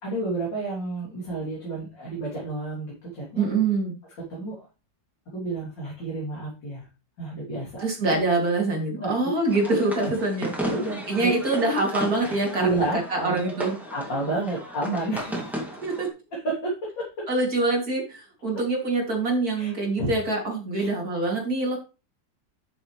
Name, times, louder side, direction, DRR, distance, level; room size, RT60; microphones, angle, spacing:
voice 1, 0.0-3.5 4.2-4.7 5.3-6.9 7.2-8.2 9.0-9.3 9.6-9.7 10.0-10.1 10.7-11.3 12.6-13.4 13.9-15.7 16.3-17.1 19.6-19.7 20.0-20.1 20.7-20.9, right 2 dB, 75° left, -5 dB, 3.9 m, -30 dB
voice 2, 3.4-3.9 7.8-10.5 11.1-12.6 13.1-13.8 15.8-16.1 17.3-21.8, right 2 dB, 55° right, 0 dB, 3.4 m, -25 dB
sound 1, 9.5-16.1, equal, ahead, 2.3 m, -35 dB
11.0 x 6.4 x 3.2 m, 0.31 s
omnidirectional pair, 2.0 m